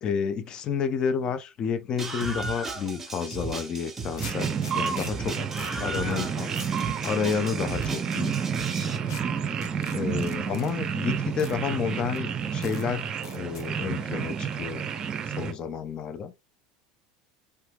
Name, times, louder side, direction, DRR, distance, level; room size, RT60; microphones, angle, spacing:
voice 1, 0.0-5.5 5.8-6.5 7.0-8.4 9.9-14.9 15.3-16.3, left 6 dB, 40° left, 0.5 m, -30 dB
Screaming, 2.0-9.0, right 3 dB, 10° right, 1.4 m, -36 dB
sound 1, 3.4-3.5 4.2-5.1 5.6-5.8 6.1-6.2 6.5-6.8 7.3-7.9 9.1-9.2 9.6-10.7 11.4-11.6 12.2-12.3 12.6-12.9 13.2-13.7, left 6 dB, 85° left, 0.6 m, -42 dB
sound 2, 4.2-15.5, right 7 dB, 40° right, 0.6 m, -30 dB
3.3 x 3.3 x 2.3 m
hypercardioid pair, 95°, 2 cm